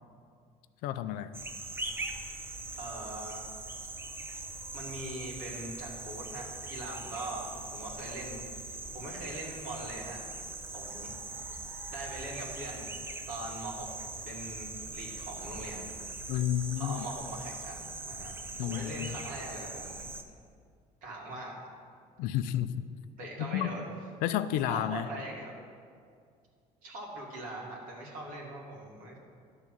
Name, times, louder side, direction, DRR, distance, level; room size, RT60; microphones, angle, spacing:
voice 1, 0.8-1.3 16.3-17.1 18.6-19.2 22.2-22.8 23.4-23.9 24.2-25.1, left 11 dB, 90° left, 11 dB, 0.4 m, -31 dB
sound 1, 1.3-20.2, right 3 dB, 15° right, 0.6 m, -41 dB
voice 2, 2.8-3.4 4.7-8.4 8.9-10.2 10.7-11.4 11.9-13.0 13.3-13.9 14.3-15.8 16.8-18.3 18.6-20.1 21.0-21.6 23.2-23.9 24.7-25.6 26.8-29.2, right 2 dB, 75° right, -3 dB, 2.0 m, -41 dB
10.5 x 3.7 x 7.3 m, 2.1 s
cardioid pair, 130°, 14 cm